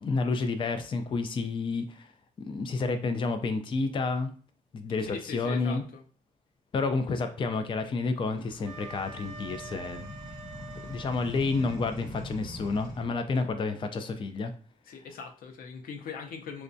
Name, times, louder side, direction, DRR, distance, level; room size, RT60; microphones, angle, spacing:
voice 1, 0.0-2.1 2.5-4.3 4.7-5.8 6.7-10.1 10.8-14.5, left 4 dB, 35° left, 8 dB, 0.4 m, -30 dB
voice 2, 5.0-6.0 14.8-16.6, left 5 dB, 85° left, 4 dB, 0.6 m, -41 dB
sound 1, 8.3-13.1, left 1 dB, 60° left, 1.0 m, -43 dB
Wind instrument woodwind instrument, 8.6-11.8, right 4 dB, ahead, 0.9 m, -46 dB
4.5 x 2.2 x 2.6 m, 0.43 s
cardioid pair, 120°, 14 cm